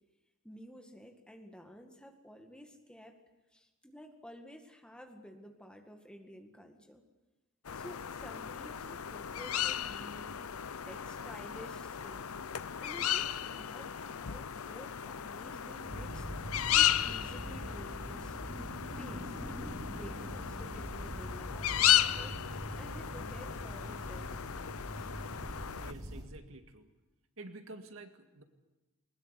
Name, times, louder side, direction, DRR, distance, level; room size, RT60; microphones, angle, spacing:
voice 1, 0.4-3.2 3.5-7.0 7.7-10.6 10.8-12.3 12.8-18.4 18.8-19.4 19.9-25.1, equal, 5° left, 4 dB, 1.9 m, -52 dB
sound 1, 7.6-25.9, left 11 dB, 85° left, 0.7 m, -35 dB
sound 2, 15.9-26.3, equal, 20° right, 3.2 m, -43 dB
voice 2, 25.8-26.9 27.4-28.4, right 2 dB, 65° right, 6 dB, 2.0 m, -49 dB
21.5 x 20.5 x 8.3 m, 1.1 s
head